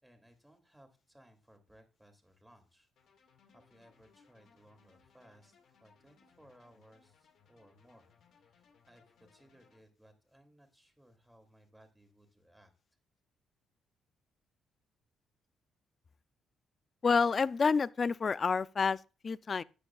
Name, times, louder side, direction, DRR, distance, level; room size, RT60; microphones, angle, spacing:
voice 1, 0.0-2.9 3.1-5.5 5.8-12.7, equal, 5° right, 2.5 m, -63 dB
sound 1, 3.0-9.8, left 5 dB, 70° left, 1.8 m, -67 dB
voice 2, 17.0-19.6, left 5 dB, 40° left, 0.4 m, -29 dB
13.5 x 8.6 x 2.3 m
cardioid pair, 90°, 0 cm